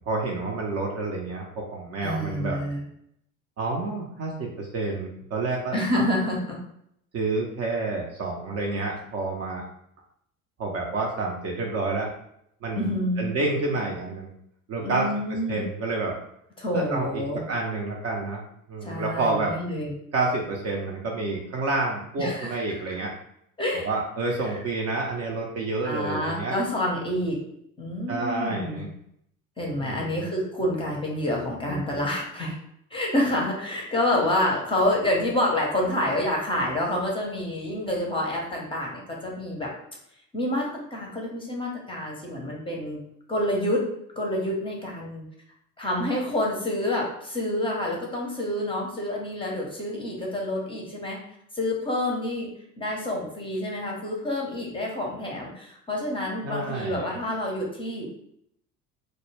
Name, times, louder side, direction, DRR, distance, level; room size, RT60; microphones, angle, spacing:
voice 1, 0.1-2.6 3.6-6.1 7.1-9.6 10.6-12.1 12.6-14.3 14.7-16.2 16.7-18.4 18.7-19.6 20.1-23.1 23.7-26.6 28.1-28.9 29.8-30.3 56.4-57.1, right 3 dB, 35° right, -1 dB, 0.5 m, -29 dB
voice 2, 2.0-2.8 5.7-6.6 12.7-13.3 14.8-15.6 16.6-17.4 18.8-19.9 22.2-22.5 23.6-23.9 24.4-24.5 25.8-27.4 27.8-28.9 29.6-32.5 32.9-39.7 40.3-43.0 43.3-43.8 44.2-45.2 45.8-51.2 51.5-52.5 52.8-58.1, left 1 dB, 10° left, -2 dB, 0.6 m, -28 dB
2.2 x 2.0 x 3.2 m, 0.73 s
figure-of-eight pair, 65°, 43 cm